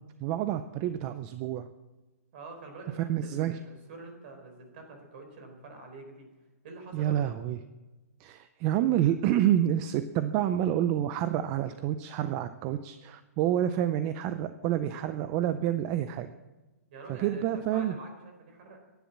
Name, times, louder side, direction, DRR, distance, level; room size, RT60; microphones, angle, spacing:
voice 1, 0.2-1.7 3.1-3.6 6.9-7.6 8.2-16.3 17.1-17.9, right 11 dB, 20° right, 12 dB, 0.5 m, -28 dB
voice 2, 2.3-6.3 6.6-7.2 16.9-18.8, right 3 dB, 40° right, 4 dB, 4.4 m, -46 dB
15.5 x 10.5 x 7.3 m, 1.1 s
hypercardioid pair, 165°, 9 cm